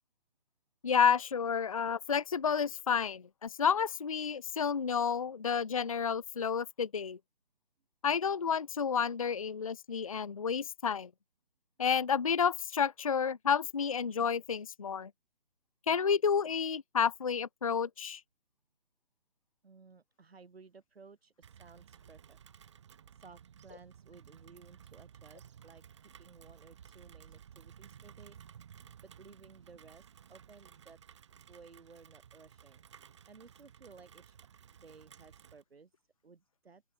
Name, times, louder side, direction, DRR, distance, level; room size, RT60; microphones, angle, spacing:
voice 1, 0.8-7.2 8.0-11.1 11.8-15.1 15.9-18.2, left 7 dB, 35° left, 0.4 m, -30 dB
voice 2, 19.6-22.4 23.1-28.4 29.0-31.0 31.5-32.8 33.3-34.4 34.7-35.9 36.2-36.8, right 4 dB, 75° right, 5.1 m, -57 dB
Rain, 21.4-35.6, right 8 dB, 30° right, 1.2 m, -56 dB
open air
hypercardioid pair, 165°, 30 cm